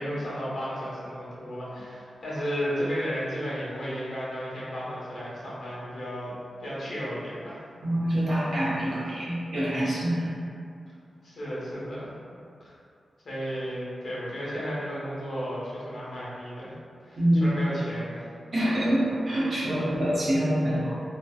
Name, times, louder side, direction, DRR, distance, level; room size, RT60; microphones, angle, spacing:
voice 1, 0.0-6.3 6.6-7.6 11.2-12.1 12.6-12.7 13.2-16.8 17.1-18.3 19.7-20.0, equal, 60° left, -8 dB, 0.8 m, -33 dB
voice 2, 7.8-10.3 17.2-17.5 18.5-21.0, equal, 50° right, -8 dB, 0.7 m, -25 dB
2.7 x 2.1 x 2.3 m, 2.4 s
wide cardioid pair, 90°, 0 cm